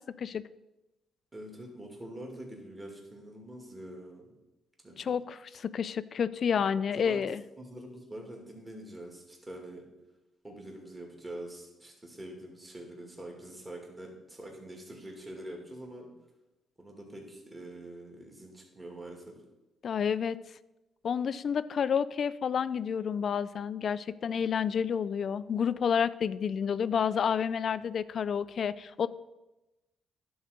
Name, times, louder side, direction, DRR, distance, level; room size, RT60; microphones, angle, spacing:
voice 1, 1.3-4.3 4.8-5.2 6.9-7.2 7.6-9.8 10.4-16.1 16.8-19.3, right 1 dB, 20° right, 0 dB, 2.2 m, -45 dB
voice 2, 5.0-7.4 19.8-20.4 21.0-29.1, left 7 dB, 55° left, 16 dB, 0.3 m, -30 dB
11.0 x 4.0 x 6.4 m, 1.0 s
cardioid pair, 90°, 0 cm